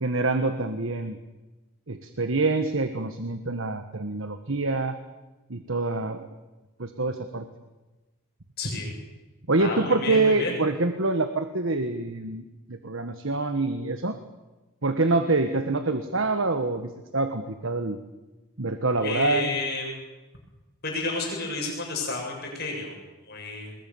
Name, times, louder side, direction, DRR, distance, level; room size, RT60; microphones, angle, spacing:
voice 1, 0.0-1.2 1.9-4.9 5.5-6.3 6.8-7.5 9.5-14.2 14.8-18.0 18.6-19.5, right 3 dB, 65° right, 8 dB, 1.4 m, -26 dB
voice 2, 8.6-8.9 9.6-10.6 19.0-20.0 20.8-23.0 23.3-23.7, left 2 dB, 45° left, 0 dB, 7.3 m, -31 dB
27.5 x 21.5 x 7.1 m, 1.1 s
head